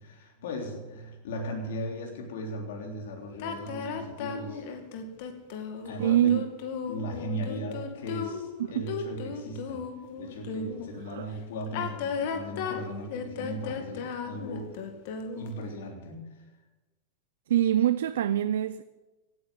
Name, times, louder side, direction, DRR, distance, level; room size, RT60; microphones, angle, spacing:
voice 1, 0.0-4.7 5.8-6.4 6.9-9.9 10.1-14.7 15.4-16.4, equal, 80° left, 3.3 m, -37 dB
sound 1, 3.4-10.9 11.6-15.6, left 6 dB, 65° left, 2.2 m, -35 dB
voice 2, 6.0-6.4 11.1-11.3 17.5-18.8, right 11 dB, 90° right, 0.5 m, -24 dB
17.0 x 9.4 x 7.6 m
supercardioid pair, 125°, 0 cm